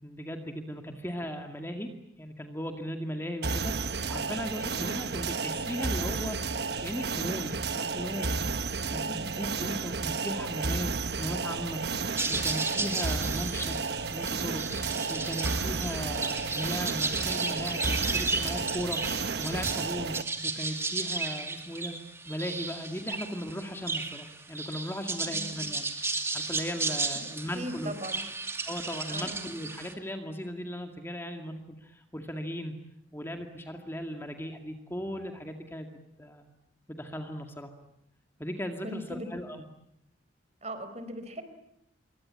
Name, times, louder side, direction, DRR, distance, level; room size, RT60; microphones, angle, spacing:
voice 1, 0.0-1.9 2.2-8.5 8.9-11.8 12.3-13.8 14.1-20.2 20.4-22.0 22.3-27.9 28.7-32.7 33.1-35.9 36.2-36.5 36.9-37.7 38.4-39.7, equal, 15° left, 4 dB, 2.1 m, -37 dB
sound 1, 3.4-20.2, right 4 dB, 55° right, 1.3 m, -32 dB
voice 2, 8.9-9.3 25.3-25.5 27.2-28.3 29.1-29.4 38.8-39.3 40.6-41.4, right 1 dB, 35° right, 10 dB, 4.6 m, -39 dB
sound 2, 12.2-29.9, right 3 dB, 15° right, 2.5 m, -34 dB
27.0 x 23.5 x 8.8 m, 0.77 s
head